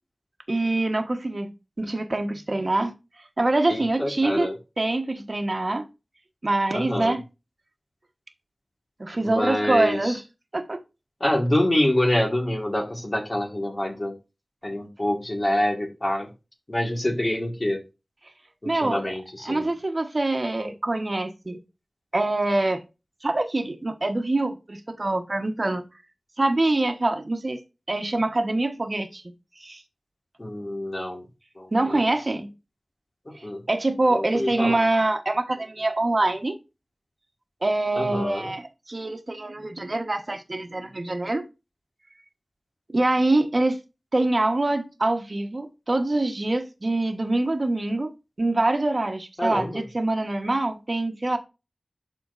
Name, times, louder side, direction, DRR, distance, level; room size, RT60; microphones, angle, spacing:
voice 1, 0.5-1.5 1.8-2.9 3.4-4.5 4.8-5.8 6.4-7.2 9.0-10.2 10.5-10.8 18.6-19.1 19.4-21.6 22.1-22.8 23.2-25.8 26.4-27.6 27.9-29.2 29.6-29.8 31.7-32.5 33.4-36.6 37.6-41.4 42.9-43.8 44.1-48.1 48.4-51.4, right 2 dB, 50° right, 1.2 m, -25 dB
voice 2, 3.7-4.6 6.7-7.2 9.2-10.1 11.2-14.2 14.6-16.3 16.7-17.8 18.6-19.7 30.4-31.2 31.6-32.0 33.3-33.6 34.1-34.8 38.0-38.5 49.4-49.8, left 1 dB, 40° left, 1.8 m, -26 dB
11.5 x 4.4 x 2.6 m
wide cardioid pair, 40°, 0 cm